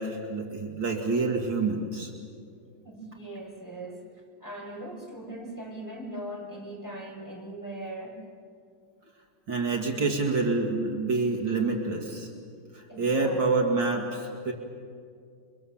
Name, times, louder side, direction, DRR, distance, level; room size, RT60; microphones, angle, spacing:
voice 1, 0.0-2.1 9.5-12.3 12.7-14.5, right 3 dB, 60° right, 1 dB, 2.9 m, -27 dB
voice 2, 2.8-4.1 4.4-8.2 12.9-13.5, right 1 dB, 10° left, -3 dB, 5.2 m, -40 dB
29.0 x 24.0 x 7.3 m, 2.2 s
omnidirectional pair, 2.3 m